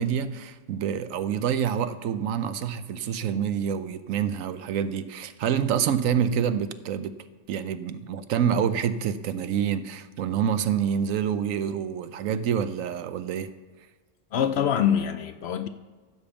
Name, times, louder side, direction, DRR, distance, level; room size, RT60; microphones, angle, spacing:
voice 1, 0.0-7.1 7.5-13.5, right 8 dB, 85° right, 1.1 m, -27 dB
voice 2, 14.3-15.7, left 9 dB, 65° left, 0.7 m, -24 dB
15.0 x 5.2 x 7.1 m
omnidirectional pair, 1.3 m